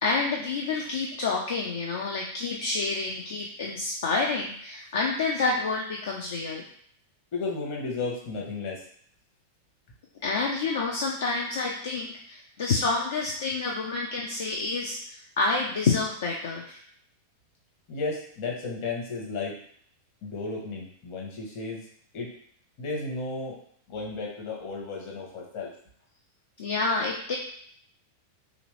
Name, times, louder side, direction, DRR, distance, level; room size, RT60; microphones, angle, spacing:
voice 1, 0.0-6.6 10.2-16.8 26.6-27.4, left 3 dB, 60° left, -1 dB, 0.4 m, -28 dB
voice 2, 7.3-8.8 17.9-19.6 20.2-21.9 22.1-22.3 22.8-23.6 23.9-25.7, left 3 dB, 45° left, -2 dB, 1.0 m, -33 dB
3.0 x 2.5 x 3.0 m, 0.62 s
figure-of-eight pair, 90°, 0 cm